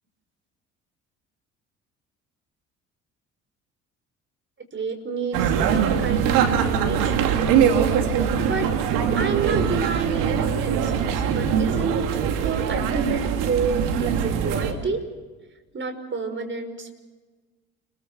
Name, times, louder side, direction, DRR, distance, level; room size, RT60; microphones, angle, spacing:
voice 1, 4.7-7.4 8.4-8.7 9.1-15.0 15.7-17.0, right 5 dB, 35° right, 7 dB, 5.5 m, -29 dB
sound 1, 5.3-14.7, right 7 dB, 70° right, 2.5 m, -22 dB
29.5 x 22.0 x 6.2 m, 1.3 s
hypercardioid pair, 55°, 33 cm